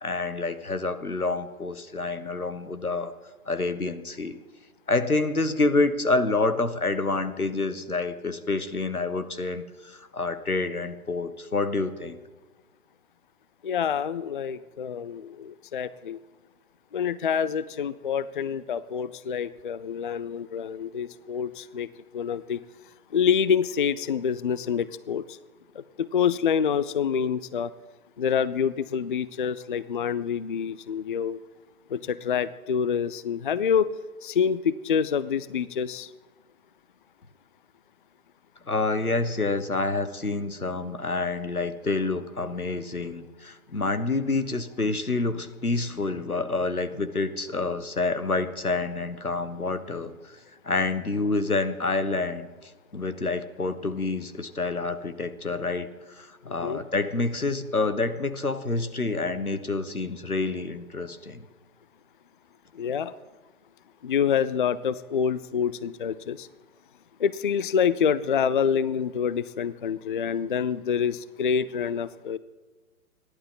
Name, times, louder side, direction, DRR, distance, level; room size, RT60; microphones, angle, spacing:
voice 1, 0.0-3.1 3.5-4.4 4.9-12.2 38.7-50.4 50.6-61.4, left 3 dB, 90° left, 11 dB, 1.3 m, -28 dB
voice 2, 13.6-16.2 16.9-21.9 22.1-22.6 23.1-25.4 25.8-27.7 28.2-31.4 31.9-33.9 34.2-36.1 56.5-56.8 62.7-63.1 64.0-66.5 67.2-72.4, left 7 dB, 40° left, 17 dB, 0.4 m, -27 dB
28.5 x 11.5 x 3.8 m, 1.3 s
figure-of-eight pair, 125°, 43 cm